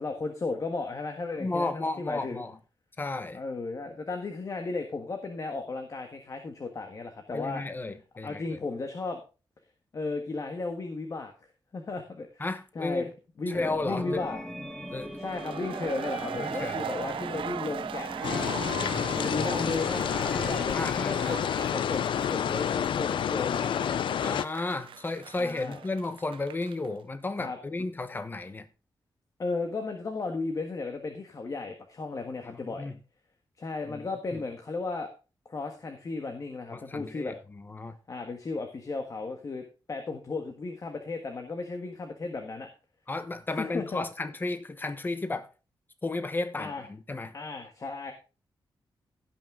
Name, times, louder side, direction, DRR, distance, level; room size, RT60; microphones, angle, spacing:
voice 1, 0.0-2.4 3.3-7.6 8.2-9.2 9.9-11.3 11.7-12.4 12.7-13.1 13.4-14.4 15.2-22.0 22.3-24.0 25.4-25.8 27.4-27.6 29.4-32.9 33.6-35.1 35.4-37.3 38.1-42.7 43.6-44.0 46.6-46.9 47.3-48.1, left 3 dB, 40° left, 1.5 m, -35 dB
voice 2, 1.4-2.6 3.0-3.4 7.3-8.6 12.4-13.1 13.5-14.2 14.9-15.2 16.3-16.8 20.7-21.4 24.2-28.7 32.4-33.0 33.9-34.1 34.3-34.4 36.7-38.0 43.1-45.5 46.0-47.3, left 2 dB, 25° left, 1.0 m, -33 dB
sound 1, 13.5-20.6, equal, 5° left, 1.6 m, -40 dB
sound 2, 15.2-26.9, right 9 dB, 90° right, 0.5 m, -39 dB
sound 3, 18.2-24.5, left 9 dB, 75° left, 0.4 m, -29 dB
16.5 x 6.0 x 3.7 m
wide cardioid pair, 125°, 9 cm